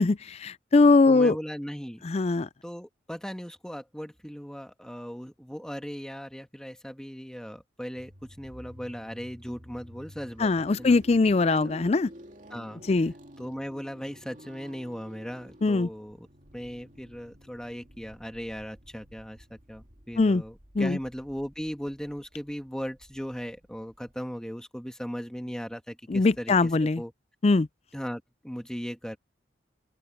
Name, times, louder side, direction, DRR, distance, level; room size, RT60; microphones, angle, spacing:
voice 1, 0.0-1.4 2.0-2.5 10.4-12.1 12.9-13.1 15.6-15.9 20.2-20.4 20.8-21.0 26.1-27.0 27.4-27.7, left 3 dB, 30° left, 0.4 m, -21 dB
voice 2, 1.1-2.0 2.6-11.0 11.4-11.6 12.5-12.8 13.4-16.3 16.5-27.1 27.9-29.2, equal, 5° left, 1.6 m, -38 dB
sound 1, 8.0-24.1, equal, 40° right, 2.7 m, -51 dB
open air
head